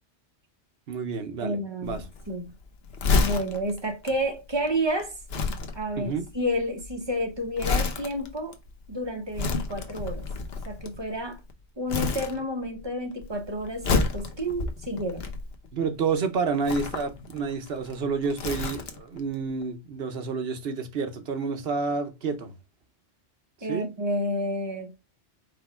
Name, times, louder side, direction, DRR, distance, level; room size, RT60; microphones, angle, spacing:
voice 1, 0.9-2.0 6.0-6.2 15.7-22.5 23.7-23.9, right 5 dB, 60° right, 1.1 m, -29 dB
voice 2, 1.4-2.5 3.2-5.2 5.7-8.6 8.9-10.3 10.6-11.4 11.8-15.2 23.6-24.9, equal, 25° right, 0.8 m, -30 dB
Crumpling crinkling, 1.8-11.5 11.9-12.8 13.1-15.8 16.5-19.2 19.5-19.6, left 4 dB, 65° left, 1.0 m, -30 dB
5.0 x 2.3 x 4.3 m
omnidirectional pair, 1.2 m